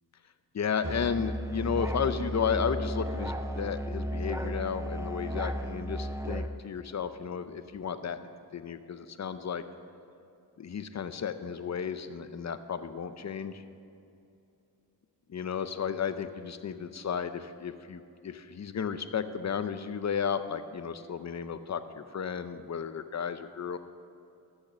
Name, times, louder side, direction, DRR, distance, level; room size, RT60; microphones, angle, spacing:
voice 1, 0.5-8.2 8.5-9.6 10.6-13.6 15.3-23.8, left 7 dB, 45° left, 11 dB, 0.6 m, -33 dB
Musical instrument, 0.8-6.5, equal, 10° right, 0.5 m, -34 dB
14.0 x 6.5 x 6.1 m, 2.7 s
wide cardioid pair, 105°, 38 cm